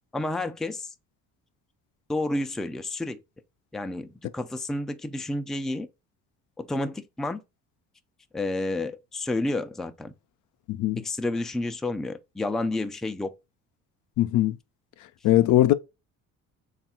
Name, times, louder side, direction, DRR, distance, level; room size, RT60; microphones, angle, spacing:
voice 1, 0.1-0.9 2.1-3.2 3.7-5.9 6.6-7.4 8.3-10.1 11.0-13.3, left 2 dB, ahead, 0.3 m, -30 dB
voice 2, 10.7-11.0 14.2-14.6 15.2-15.7, left 14 dB, 65° left, 0.5 m, -20 dB
3.4 x 2.4 x 4.2 m
supercardioid pair, 85°, 33 cm